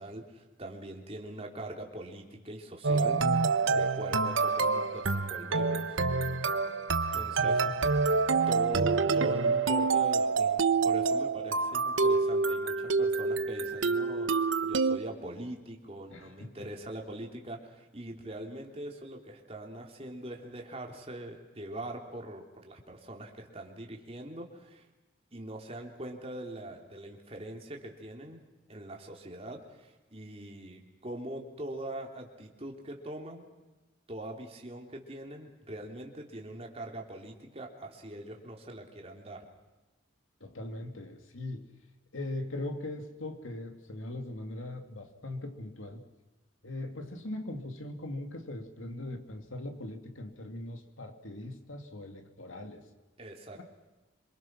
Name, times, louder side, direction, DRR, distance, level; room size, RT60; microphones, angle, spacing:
voice 1, 0.0-3.2 3.7-6.0 7.1-7.7 8.5-24.8 25.3-28.4 28.7-33.5 34.1-39.4 53.2-53.6, right 1 dB, 30° right, 3.2 m, -42 dB
sound 1, 2.8-15.0, right 4 dB, 75° right, 1.1 m, -27 dB
voice 2, 7.4-7.9 16.1-16.7 40.4-41.7 42.1-46.1 46.6-52.9 53.5-53.6, left 1 dB, 85° left, 2.6 m, -40 dB
26.5 x 23.5 x 6.1 m
head